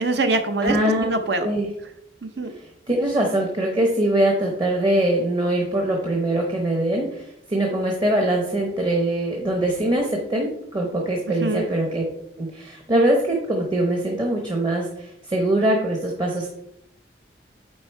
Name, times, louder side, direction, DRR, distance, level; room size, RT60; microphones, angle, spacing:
voice 1, 0.0-1.5 2.2-2.5 11.4-11.7, right 2 dB, 65° right, 7 dB, 0.7 m, -24 dB
voice 2, 0.6-1.1 1.4-1.7 2.9-12.0 12.4-16.5, right 1 dB, 25° right, 0 dB, 0.9 m, -22 dB
8.7 x 3.7 x 4.6 m, 0.79 s
head